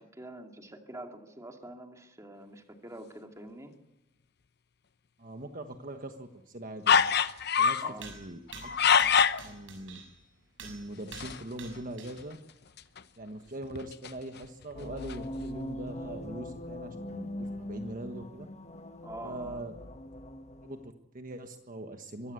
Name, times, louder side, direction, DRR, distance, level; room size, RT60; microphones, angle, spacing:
voice 1, 0.0-3.7 7.8-8.1 19.0-19.6, right 1 dB, 15° right, 3 dB, 2.4 m, -45 dB
voice 2, 5.2-7.0 7.6-8.4 8.8-8.9 9.4-10.0 10.6-12.4 13.2-18.5 19.2-19.7 20.6-22.3, right 1 dB, 45° right, 6 dB, 1.4 m, -42 dB
sound 1, 6.9-7.9 8.5-9.4 11.1-11.4 11.7-11.8 12.1-12.2 12.8-13.0 13.6-14.6 15.1-15.2, left 7 dB, 60° left, 0.8 m, -25 dB
sound 2, 7.4-7.5 8.0-10.2 10.6-12.3 12.7-12.8 13.7-13.8, right 4 dB, 90° right, 6.8 m, -48 dB
sound 3, 14.7-20.9, left 1 dB, 35° left, 1.4 m, -41 dB
23.5 x 15.5 x 8.3 m, 0.98 s
head